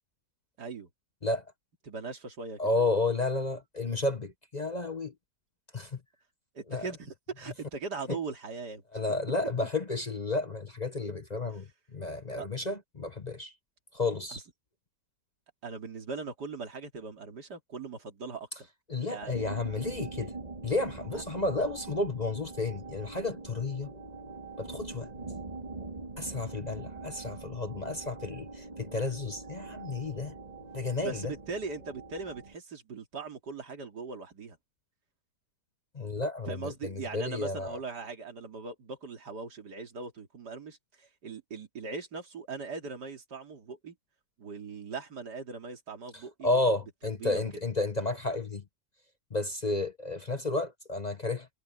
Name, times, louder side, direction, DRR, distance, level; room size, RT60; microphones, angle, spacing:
voice 1, 0.6-0.9 1.9-2.6 6.5-8.8 12.4-12.5 14.3-14.4 15.6-18.7 19.0-19.5 21.1-21.2 31.0-34.6 36.5-44.0 44.4-46.6 47.2-47.4, right 4 dB, 85° right, 3.2 m, -40 dB
voice 2, 2.6-5.1 5.7-6.0 6.7-6.9 8.9-13.5 13.9-14.4 18.9-20.3 20.6-23.9 24.6-25.1 26.2-30.3 30.7-31.3 35.9-37.8 46.4-48.6 49.3-51.5, left 2 dB, 30° left, 1.0 m, -32 dB
sound 1, 19.2-32.5, right 3 dB, 25° right, 2.8 m, -43 dB
omnidirectional pair, 1.7 m